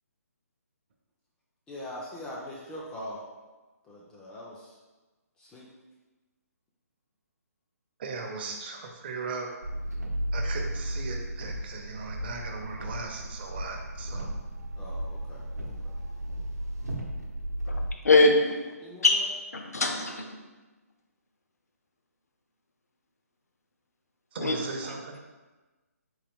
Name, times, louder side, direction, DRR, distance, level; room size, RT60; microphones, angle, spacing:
voice 1, 1.7-3.2 3.8-4.8 5.4-5.7 8.3-8.6 14.8-15.4 15.8-15.9 18.8-19.2, left 1 dB, 10° left, -4 dB, 0.3 m, -42 dB
voice 2, 8.0-9.5 10.3-14.3 24.3-25.2, right 4 dB, 40° right, 2 dB, 0.6 m, -38 dB
sound 1, 9.6-17.9, right 1 dB, 85° right, 0.7 m, -34 dB
voice 3, 18.0-18.6 19.0-19.3 19.5-20.3 24.4-24.6, left 2 dB, 75° left, 3 dB, 0.6 m, -22 dB
3.7 x 2.6 x 3.5 m, 1.2 s
figure-of-eight pair, 140°, 9 cm